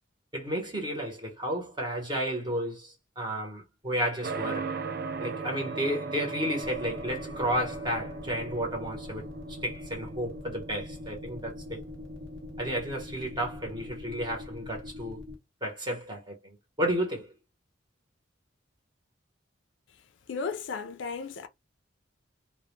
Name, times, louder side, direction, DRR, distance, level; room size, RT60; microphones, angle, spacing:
voice 1, 0.3-4.7 5.2-9.3 9.6-11.8 12.6-15.2 15.6-17.3, equal, 25° right, 0.8 m, -32 dB
sound 1, 4.2-13.9, right 4 dB, 50° right, 0.4 m, -39 dB
sound 2, 6.6-15.3, left 3 dB, 75° right, 0.8 m, -43 dB
voice 2, 20.3-21.5, left 5 dB, 75° left, 0.4 m, -34 dB
2.1 x 2.1 x 3.0 m
head